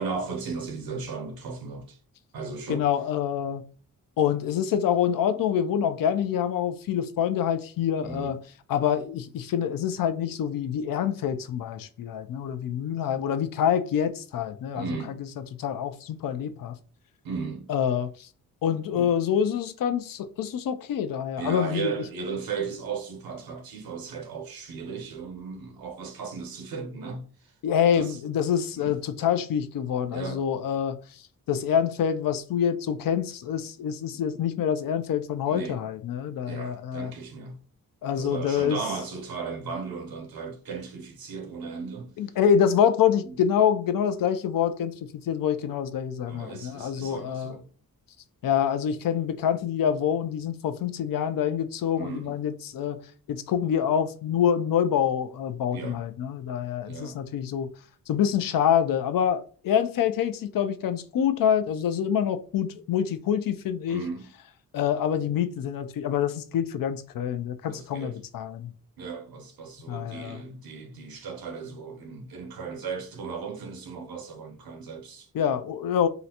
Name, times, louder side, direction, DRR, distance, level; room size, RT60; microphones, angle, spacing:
voice 1, 0.0-2.0 2.3-2.9 8.0-8.4 14.7-15.3 17.2-17.7 18.9-19.2 21.4-27.5 27.9-28.2 28.7-29.0 30.1-30.4 35.5-35.8 36.4-37.6 38.1-42.2 43.2-43.5 46.3-47.7 51.9-52.4 55.7-56.0 56.9-57.2 63.9-64.3 67.7-68.2 69.0-75.3, right 5 dB, 80° right, 0.8 m, -36 dB
voice 2, 2.7-3.6 4.2-8.4 8.7-14.9 15.6-16.7 17.7-18.3 18.6-21.9 27.6-31.0 31.5-37.1 38.0-38.8 42.2-47.6 48.4-53.0 53.3-57.7 58.1-64.0 64.7-68.7 69.9-70.4 75.3-76.1, left 8 dB, 70° left, 0.5 m, -26 dB
3.7 x 2.1 x 2.8 m
wide cardioid pair, 110°, 35 cm